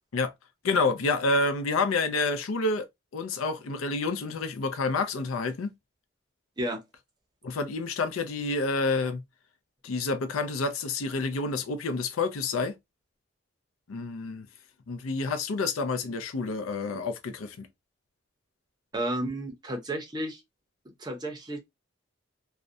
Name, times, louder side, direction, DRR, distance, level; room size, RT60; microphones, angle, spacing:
voice 1, 0.6-2.9 3.1-5.7 7.4-9.2 9.8-12.7 13.9-14.5 14.9-17.7, left 3 dB, 85° left, 0.5 m, -28 dB
voice 2, 18.9-20.4 20.9-21.6, right 1 dB, 20° right, 0.5 m, -32 dB
2.4 x 2.1 x 2.5 m
head